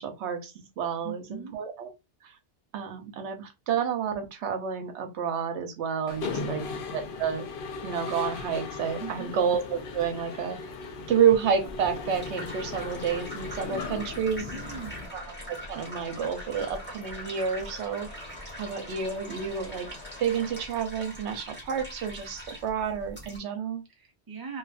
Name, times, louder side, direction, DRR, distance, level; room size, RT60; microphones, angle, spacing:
voice 1, 0.0-1.9 2.2-2.3 2.7-6.6 6.9-7.5 7.8-10.6 11.1-14.5 15.1-15.2 15.5-18.1 18.6-19.9 20.2-23.8, right 7 dB, 80° right, 0.9 m, -29 dB
voice 2, 1.0-1.6 6.1-6.6 9.0-9.4 14.5-15.1 23.9-24.6, right 6 dB, 30° right, 0.4 m, -40 dB
Mechanisms, 6.1-15.0, left 4 dB, 60° left, 0.6 m, -37 dB
sound 1, 11.7-23.4, equal, 10° left, 1.1 m, -43 dB
sound 2, 14.5-20.7, left 2 dB, 85° left, 1.4 m, -47 dB
2.6 x 2.4 x 2.4 m
omnidirectional pair, 1.2 m